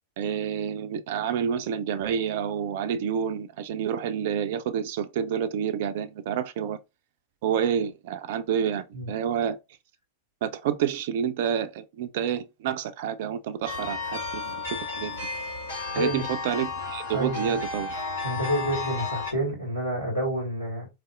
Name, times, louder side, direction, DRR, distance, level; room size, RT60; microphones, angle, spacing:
voice 1, 0.2-6.8 7.4-9.6 10.4-15.2 16.0-17.9, right 8 dB, 50° right, 0.5 m, -29 dB
sound 1, 13.6-19.3, left 4 dB, 70° left, 2.3 m, -33 dB
voice 2, 15.9-16.2 17.1-17.6 18.2-20.9, equal, 90° left, 2.1 m, -29 dB
4.0 x 3.2 x 2.5 m
figure-of-eight pair, 90°, 0 cm